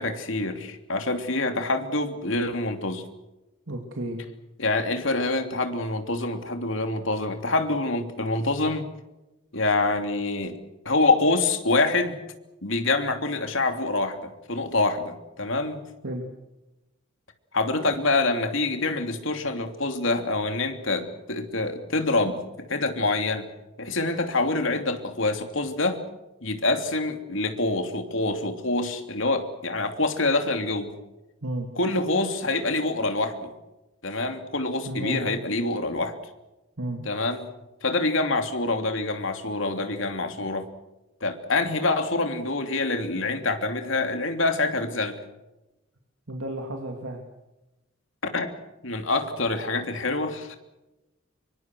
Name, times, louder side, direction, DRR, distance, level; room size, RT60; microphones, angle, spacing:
voice 1, 0.0-3.0 4.6-8.9 9.5-10.6 10.8-12.2 12.6-15.8 17.5-23.5 23.8-26.0 26.4-30.9 31.8-33.5 34.0-36.1 37.0-37.5 37.8-40.7 41.2-45.2 48.3-48.5 48.8-50.6, left 2 dB, 70° left, 6 dB, 3.0 m, -26 dB
voice 2, 3.7-4.2 16.0-16.3 31.4-31.7 34.8-35.2 36.8-37.1 46.3-47.2 48.4-48.5, right 1 dB, 80° right, 2 dB, 2.7 m, -32 dB
25.5 x 24.0 x 6.3 m, 0.98 s
head